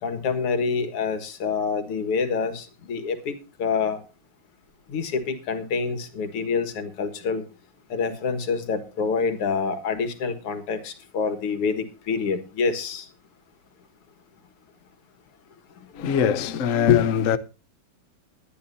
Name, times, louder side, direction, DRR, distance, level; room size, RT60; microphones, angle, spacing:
voice 1, 0.0-3.3 3.6-4.0 4.9-7.4 7.9-13.1, left 5 dB, 90° left, 2.6 m, -27 dB
voice 2, 15.9-17.4, left 8 dB, 55° left, 0.9 m, -21 dB
22.0 x 10.5 x 2.7 m
omnidirectional pair, 2.4 m